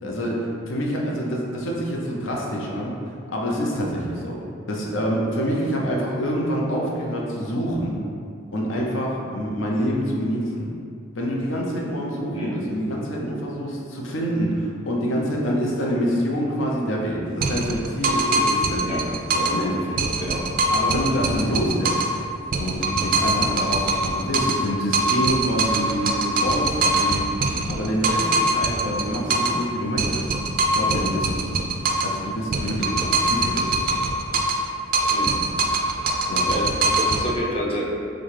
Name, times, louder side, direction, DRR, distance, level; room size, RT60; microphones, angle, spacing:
voice 1, 0.0-2.9 3.3-4.4 4.7-8.0 8.5-10.7 11.2-19.0 19.3-20.0 20.7-22.0 22.6-30.3 30.7-31.6 32.0-33.8 36.3-36.5, equal, 70° left, -2 dB, 0.7 m, -26 dB
sound 1, 17.4-19.6 20.0-22.2 22.5-24.7 24.9-29.6 30.0-32.2 32.5-34.7 34.9-37.2, right 2 dB, 45° right, 0.3 m, -23 dB
voice 2, 35.1-35.4 36.5-37.8, equal, 25° left, -4 dB, 0.6 m, -29 dB
6.1 x 2.2 x 3.3 m, 2.5 s
head